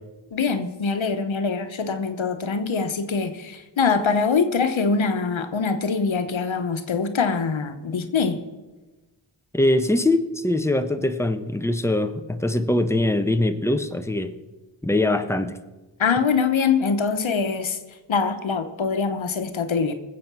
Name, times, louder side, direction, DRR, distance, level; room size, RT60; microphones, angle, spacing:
voice 1, 0.3-8.4 16.0-17.8 18.1-19.9, left 5 dB, 85° left, 8 dB, 1.1 m, -23 dB
voice 2, 9.5-14.4 14.8-15.6, left 1 dB, 5° left, 8 dB, 1.1 m, -22 dB
19.5 x 8.0 x 6.1 m, 1.2 s
cardioid pair, 40°, 46 cm